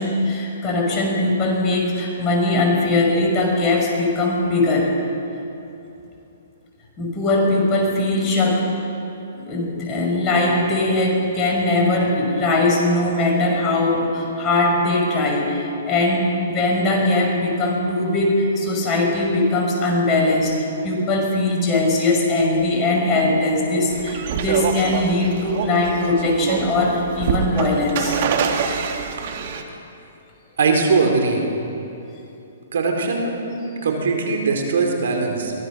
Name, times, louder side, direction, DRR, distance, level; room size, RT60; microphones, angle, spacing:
voice 1, 0.0-4.9 7.0-8.7 9.4-28.2, left 2 dB, 25° left, -1 dB, 5.8 m, -20 dB
sound 1, 23.9-29.6, right 6 dB, 50° right, 2.1 m, -25 dB
voice 2, 30.6-31.4 32.7-33.3 33.7-35.5, right 4 dB, 70° right, 2 dB, 4.0 m, -20 dB
23.5 x 17.5 x 6.3 m, 2.9 s
hypercardioid pair, 135°, 0 cm